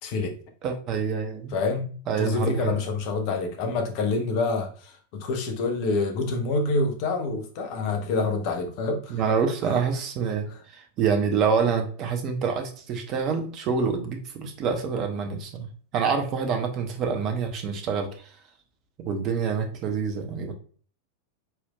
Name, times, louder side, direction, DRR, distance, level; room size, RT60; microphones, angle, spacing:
voice 1, 0.0-0.4 1.5-1.9 2.2-9.2 10.5-10.6, left 3 dB, 45° left, 4 dB, 0.9 m, -27 dB
voice 2, 0.6-1.5 2.1-2.8 9.1-10.5 10.7-15.7 15.9-18.3 19.0-20.5, right 6 dB, 35° right, 5 dB, 0.9 m, -26 dB
4.4 x 4.3 x 2.4 m, 0.43 s
figure-of-eight pair, 90°, 0 cm